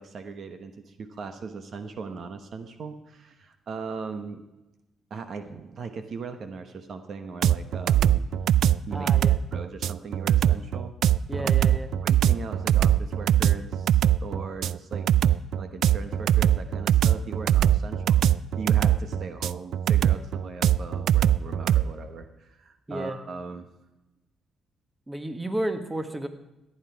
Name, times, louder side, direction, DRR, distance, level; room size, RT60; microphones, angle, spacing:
voice 1, 0.0-4.4 5.1-8.3 8.9-9.2 9.5-10.9 11.4-11.5 12.0-15.1 15.6-18.2 18.6-23.7, right 4 dB, 55° right, 8 dB, 1.1 m, -39 dB
sound 1, 7.4-21.8, right 11 dB, 75° right, 0.3 m, -21 dB
voice 2, 8.9-9.4 11.3-11.9 22.9-23.2 25.1-26.3, right 1 dB, 15° right, 8 dB, 1.4 m, -32 dB
14.5 x 9.9 x 4.7 m, 1.0 s
cardioid pair, 90°, 0 cm